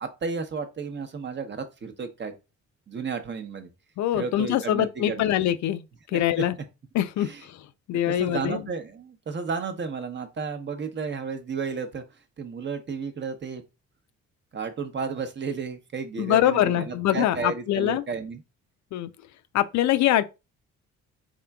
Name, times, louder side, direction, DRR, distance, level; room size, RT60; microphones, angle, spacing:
voice 1, 0.0-2.3 2.9-3.7 4.1-5.3 6.1-6.2 7.2-7.4 8.1-12.0 12.4-13.6 14.5-18.4, right 5 dB, 40° right, 0.7 m, -33 dB
voice 2, 4.0-5.8 6.1-6.6 6.9-7.6 7.9-8.6 16.2-18.0 18.9-19.1 19.5-20.3, left 12 dB, 70° left, 0.4 m, -24 dB
3.7 x 3.6 x 2.2 m
cardioid pair, 90°, 30 cm